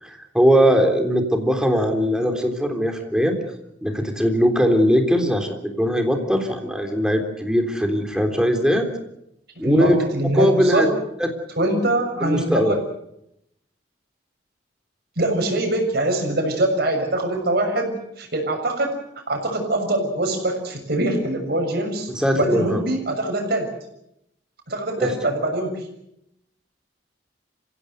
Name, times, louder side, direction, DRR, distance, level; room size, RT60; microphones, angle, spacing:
voice 1, 0.0-3.3 3.8-8.9 9.6-10.0 10.3-10.9 11.2-11.3 12.2-12.8 22.2-22.8 25.0-25.1, equal, 5° right, 4 dB, 3.6 m, -20 dB
voice 2, 9.6-10.9 11.6-12.8 15.2-18.9 19.3-23.7 24.7-25.8, right 1 dB, 60° right, 3 dB, 6.6 m, -23 dB
26.5 x 17.0 x 8.0 m, 0.80 s
head